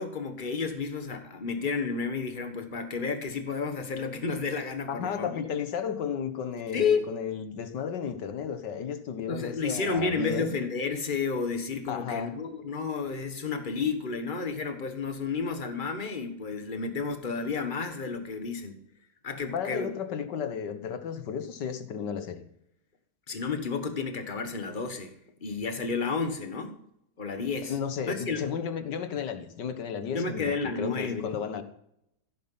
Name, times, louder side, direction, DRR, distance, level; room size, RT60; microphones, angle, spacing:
voice 1, 0.0-5.5 6.7-7.1 9.3-18.8 19.2-19.9 23.3-25.1 25.4-26.8 27.2-27.7 28.1-28.4 30.1-31.3, left 4 dB, 25° left, 1.5 m, -31 dB
voice 2, 4.9-10.6 11.9-12.3 19.5-22.4 27.6-31.6, left 7 dB, 65° left, 1.8 m, -33 dB
15.5 x 8.7 x 5.6 m
omnidirectional pair, 2.1 m